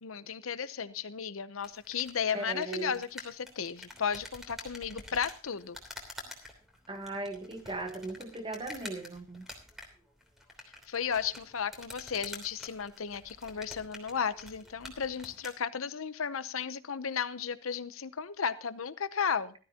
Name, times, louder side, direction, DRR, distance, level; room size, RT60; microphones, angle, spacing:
voice 1, 0.0-5.8 10.9-19.5, left 7 dB, 85° left, 13 dB, 0.8 m, -34 dB
sound 1, 1.6-15.6, left 1 dB, ahead, 3.1 m, -48 dB
voice 2, 2.3-3.0 6.9-9.4, right 2 dB, 25° right, 7 dB, 1.4 m, -38 dB
17.0 x 13.0 x 2.9 m, 0.38 s
head